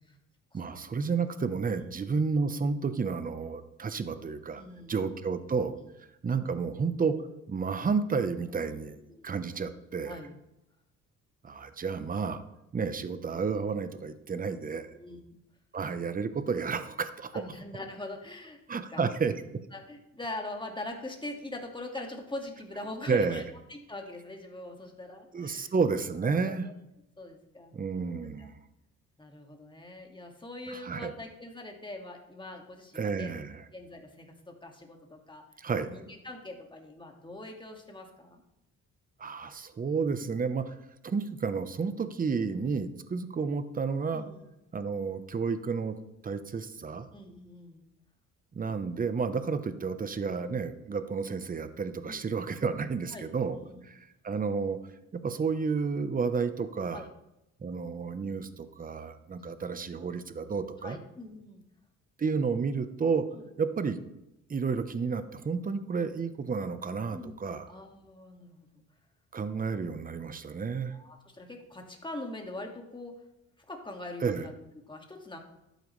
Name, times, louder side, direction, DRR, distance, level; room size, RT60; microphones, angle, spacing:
voice 1, 0.5-4.6 4.9-5.7 6.2-7.2 7.5-10.2 11.4-12.4 12.7-14.9 15.7-17.4 18.7-19.3 23.1-23.4 25.3-26.7 27.7-28.5 30.7-31.1 32.9-33.6 35.6-35.9 39.2-40.7 41.0-44.2 44.7-46.0 46.2-47.1 48.5-53.6 53.8-54.8 55.1-57.1 57.6-61.0 62.2-63.3 63.6-64.0 64.5-67.7 69.3-70.9 74.2-74.5, right 5 dB, 30° right, 11 dB, 0.9 m, -31 dB
voice 2, 4.6-5.0 8.7-9.3 10.1-10.3 15.0-15.4 17.3-18.6 18.9-19.0 19.7-23.4 23.7-25.7 26.2-26.7 27.2-27.7 28.4-28.5 29.2-33.4 33.7-35.4 35.8-38.4 44.1-44.4 47.1-47.9 52.1-52.2 53.1-53.3 53.5-53.8 56.9-57.1 59.4-59.7 60.8-61.6 63.3-63.5 67.1-67.4 67.7-68.8 70.9-73.2 73.6-74.5 74.8-75.4, left 2 dB, 15° left, 2 dB, 2.0 m, -43 dB
12.0 x 9.1 x 3.2 m, 0.89 s
cardioid pair, 90°, 30 cm